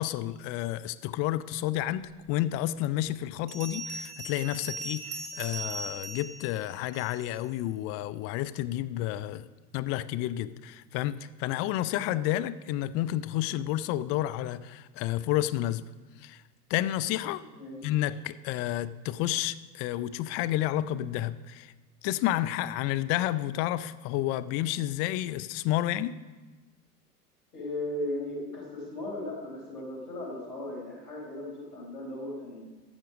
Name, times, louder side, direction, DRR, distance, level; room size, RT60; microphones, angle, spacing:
voice 1, 0.0-9.5 9.7-15.9 16.2-16.4 16.7-17.4 17.8-21.7 22.0-26.2, left 14 dB, 35° left, 15 dB, 0.4 m, -30 dB
Bell, 2.3-2.4 3.5-7.4, right 2 dB, 35° right, 2.8 m, -39 dB
voice 2, 17.3-17.9 27.5-32.6, left 1 dB, 80° left, -2 dB, 4.5 m, -37 dB
12.0 x 7.5 x 6.2 m, 1.3 s
hypercardioid pair, 85°, 47 cm